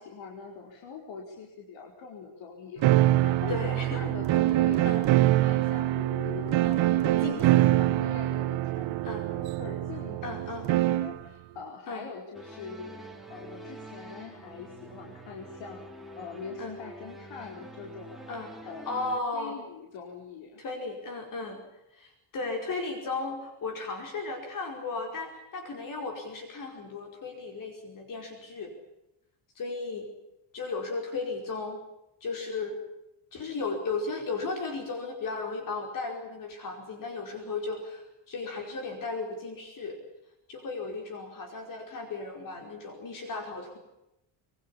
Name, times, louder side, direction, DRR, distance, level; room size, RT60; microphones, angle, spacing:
voice 1, 0.0-5.0 5.4-9.0 9.2-15.8 16.2-18.3 18.6-19.0 19.3-20.6, left 5 dB, 65° left, 1 dB, 4.8 m, -43 dB
sound 1, 2.8-11.2, right 15 dB, 70° right, 1.3 m, -24 dB
voice 2, 3.5-4.0 4.8-5.0 6.6-6.8 7.2-7.8 9.0-9.2 10.2-10.7 11.9-12.1 16.6-16.7 18.3-18.5 18.8-19.6 20.6-21.6 21.9-28.7 29.5-30.1 30.5-31.8 32.2-32.8 33.3-40.0 40.5-43.8, left 3 dB, 40° left, 4 dB, 5.1 m, -35 dB
sound 2, 12.3-19.2, right 1 dB, ahead, 2.6 m, -46 dB
25.5 x 23.5 x 7.2 m, 0.90 s
cardioid pair, 175°, 48 cm